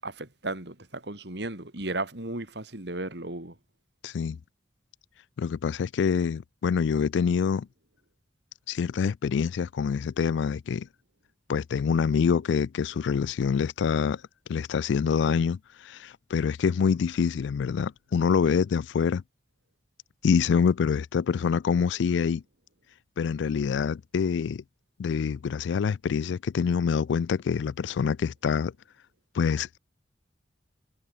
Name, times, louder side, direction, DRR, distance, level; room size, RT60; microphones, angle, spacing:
voice 1, 0.0-3.5, right 2 dB, 60° right, 3.4 m, -35 dB
voice 2, 4.0-4.4 5.4-7.7 8.7-10.9 11.5-14.2 14.5-19.2 20.2-22.4 23.2-24.6 25.0-28.7 29.3-29.8, left 6 dB, 70° left, 0.3 m, -26 dB
head